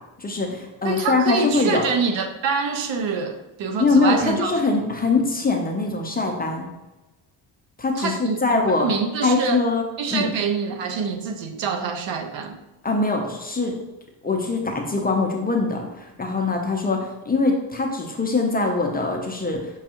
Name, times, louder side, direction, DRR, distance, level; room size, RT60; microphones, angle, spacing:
voice 1, 0.2-1.9 3.8-6.6 7.8-8.9 9.2-9.8 10.1-10.3 12.8-13.8 14.2-19.8, left 3 dB, 20° left, 1 dB, 0.5 m, -22 dB
voice 2, 0.8-4.6 8.0-8.4 8.7-9.6 10.0-12.6, right 5 dB, 65° right, 7 dB, 0.6 m, -26 dB
6.2 x 2.3 x 2.9 m, 1.0 s
cardioid pair, 100°, 48 cm